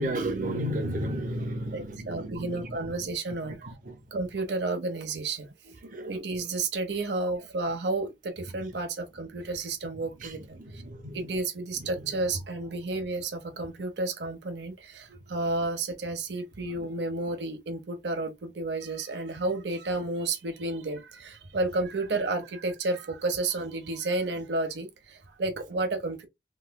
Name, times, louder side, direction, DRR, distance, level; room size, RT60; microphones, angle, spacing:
voice 1, 0.0-3.1 3.5-4.0 5.9-6.1 10.0-11.2 11.8-12.1 15.1-15.2, right 1 dB, 45° right, 0.7 m, -34 dB
voice 2, 1.7-3.8 4.1-10.4 10.7-10.8 11.1-26.3, right 2 dB, 80° right, 0.7 m, -31 dB
3.2 x 3.1 x 2.2 m
head